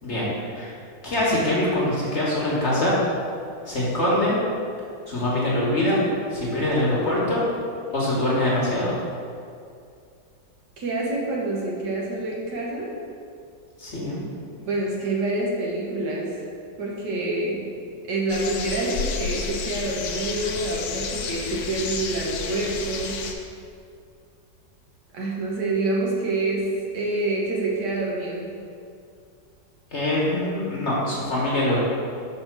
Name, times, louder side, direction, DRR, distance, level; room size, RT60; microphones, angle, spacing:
voice 1, 0.0-0.7 1.0-2.9 3.6-4.3 5.1-6.0 6.3-7.4 7.9-8.9 13.8-14.2 29.9-31.8, left 1 dB, 45° left, -6 dB, 1.2 m, -23 dB
voice 2, 10.8-12.9 14.6-16.4 16.8-17.6 18.1-23.2 25.1-26.7 26.9-28.5, right 2 dB, 70° right, -4 dB, 1.7 m, -27 dB
sound 1, 18.3-23.3, left 5 dB, 70° left, 1.0 m, -31 dB
5.4 x 3.8 x 5.9 m, 2.4 s
omnidirectional pair, 2.0 m